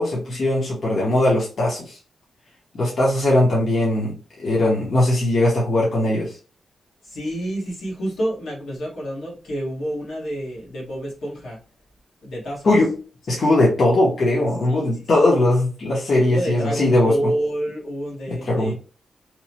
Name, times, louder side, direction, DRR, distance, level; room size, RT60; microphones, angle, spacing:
voice 1, 0.0-2.0 2.7-6.3 12.6-12.9 13.3-17.1 18.3-18.7, left 1 dB, 45° left, 0.8 m, -19 dB
voice 2, 7.0-11.6 12.2-12.8 14.7-14.9 15.3-15.4 16.3-18.7, right 1 dB, 80° left, 1.3 m, -29 dB
2.9 x 2.0 x 2.8 m
wide cardioid pair, 140°, 0 cm